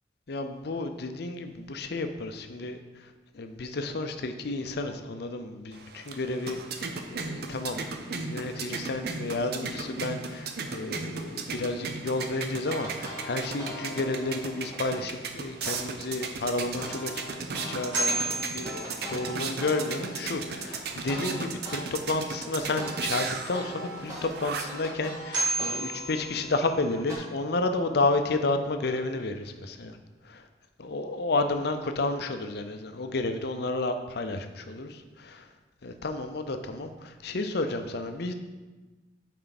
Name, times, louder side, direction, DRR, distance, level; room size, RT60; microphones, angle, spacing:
voice 1, 0.3-2.8 3.3-17.1 17.5-30.0 30.3-30.4 30.8-35.4 35.8-38.3, left 2 dB, 60° left, 7 dB, 0.6 m, -31 dB
sound 1, 5.7-24.9, right 4 dB, 60° right, 0.6 m, -36 dB
sound 2, 12.6-15.0 15.6-15.8 16.2-21.8 22.2-27.2, equal, 20° right, 1.6 m, -41 dB
sound 3, 17.9-19.5 24.6-24.7 25.3-27.0, right 2 dB, 90° right, 2.0 m, -32 dB
7.7 x 4.7 x 4.0 m, 1.2 s
head